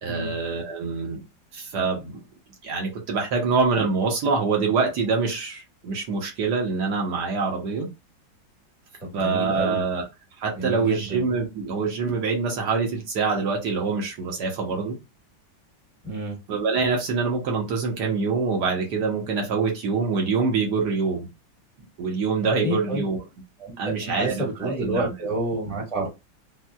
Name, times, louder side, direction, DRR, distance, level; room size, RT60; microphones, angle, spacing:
voice 1, 0.0-1.2 1.5-2.2 2.6-7.9 9.1-10.0 10.4-15.0 16.5-21.3 21.8-23.2 23.8-25.1 25.7-25.8, right 4 dB, 70° right, 1.3 m, -25 dB
voice 2, 9.0-9.8 10.5-11.2 16.0-16.4 22.6-23.0 23.6-26.1, right 2 dB, 5° left, 0.8 m, -29 dB
4.2 x 2.0 x 2.2 m
omnidirectional pair, 2.0 m